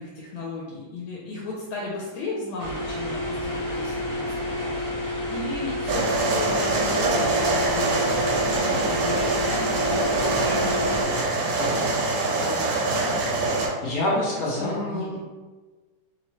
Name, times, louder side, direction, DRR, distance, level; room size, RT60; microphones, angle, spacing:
voice 1, 0.0-11.6 12.2-13.0 14.1-15.2, left 3 dB, 85° left, -4 dB, 1.4 m, -36 dB
sound 1, 2.6-11.0, left 1 dB, 55° left, 1.2 m, -29 dB
sound 2, 5.9-13.7, right 2 dB, 75° right, 1.3 m, -24 dB
voice 2, 13.8-15.2, left 1 dB, 70° left, -5 dB, 0.9 m, -26 dB
3.2 x 2.8 x 2.9 m, 1.3 s
omnidirectional pair, 2.1 m